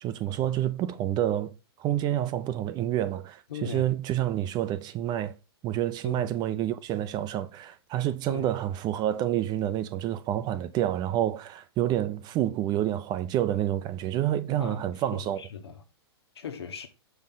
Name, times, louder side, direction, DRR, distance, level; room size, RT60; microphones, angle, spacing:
voice 1, 0.0-1.5 1.8-5.3 5.6-15.4, right 12 dB, 30° right, 0.7 m, -28 dB
voice 2, 3.5-3.9 6.0-6.3 8.3-8.5 14.6-15.8 16.3-16.9, left 6 dB, 75° left, 1.5 m, -39 dB
6.1 x 5.7 x 3.8 m
hypercardioid pair, 115°, 13 cm